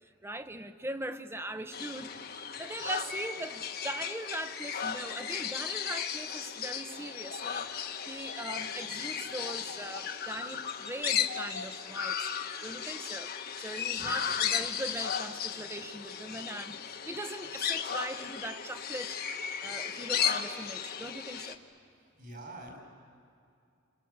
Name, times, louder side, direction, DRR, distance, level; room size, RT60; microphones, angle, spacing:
voice 1, 0.2-12.3 12.6-19.2 19.6-21.6, right 1 dB, 10° right, 9 dB, 0.9 m, -40 dB
sound 1, 1.7-21.6, left 7 dB, 50° left, 1.2 m, -35 dB
voice 2, 22.2-22.8, right 2 dB, 50° right, 2 dB, 7.5 m, -45 dB
29.5 x 26.5 x 7.4 m, 2.5 s
head